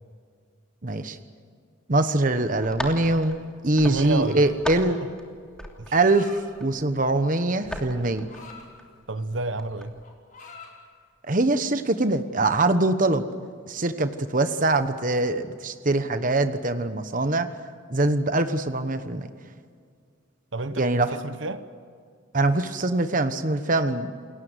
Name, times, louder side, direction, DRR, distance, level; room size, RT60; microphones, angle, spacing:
voice 1, 0.8-1.2 1.9-5.0 5.9-6.3 6.6-8.3 11.2-13.3 13.7-17.5 17.9-19.3 20.8-21.2 22.3-24.1, right 2 dB, 45° right, 9 dB, 1.2 m, -23 dB
sound 1, 2.6-5.2 5.5-7.1 7.5-8.9 9.2-10.0, equal, 5° left, 3.0 m, -38 dB
voice 2, 3.8-4.5 5.8-6.0 9.1-9.9 20.5-21.6, right 2 dB, 75° right, 11 dB, 1.2 m, -30 dB
sound 2, 4.1-4.7 5.7-6.4 7.3-8.7 9.2-9.4 9.7-10.8, left 4 dB, 45° left, 5.6 m, -46 dB
29.5 x 21.0 x 8.1 m, 2.1 s
head